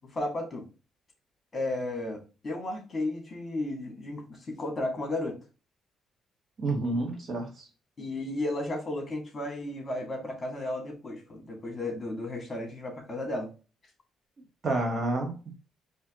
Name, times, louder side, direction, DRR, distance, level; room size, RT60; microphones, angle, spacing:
voice 1, 0.1-0.6 1.5-5.4 8.0-13.5, left 1 dB, 30° left, 2.3 m, -34 dB
voice 2, 6.6-7.7 14.6-15.6, right 2 dB, 45° right, 1.6 m, -29 dB
4.4 x 3.1 x 3.8 m
cardioid pair, 90°, 0 cm